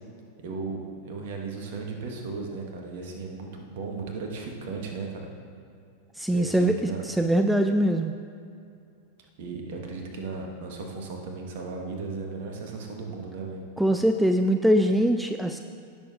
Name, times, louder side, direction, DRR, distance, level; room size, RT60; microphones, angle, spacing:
voice 1, 0.4-5.3 6.3-7.0 9.4-13.6, right 4 dB, 50° right, 2 dB, 1.4 m, -36 dB
voice 2, 6.2-8.1 13.8-15.6, right 1 dB, 5° right, 6 dB, 0.3 m, -22 dB
16.0 x 6.8 x 2.5 m, 2.4 s
figure-of-eight pair, 90°, 0 cm